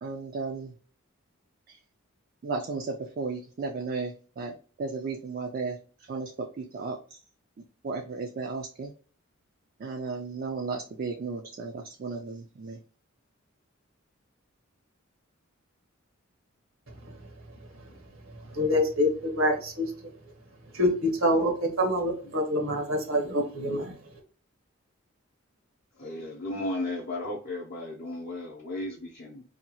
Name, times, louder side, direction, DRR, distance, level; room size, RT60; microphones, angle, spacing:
voice 1, 0.0-0.7 1.7-1.8 2.4-7.2 7.8-8.9 9.8-12.8, right 4 dB, 45° right, 2 dB, 0.3 m, -35 dB
voice 2, 18.5-19.9 20.7-24.0, left 1 dB, 80° right, 2 dB, 1.0 m, -26 dB
voice 3, 26.0-29.4, left 2 dB, 50° left, -4 dB, 0.6 m, -34 dB
2.7 x 2.2 x 2.8 m, 0.41 s
head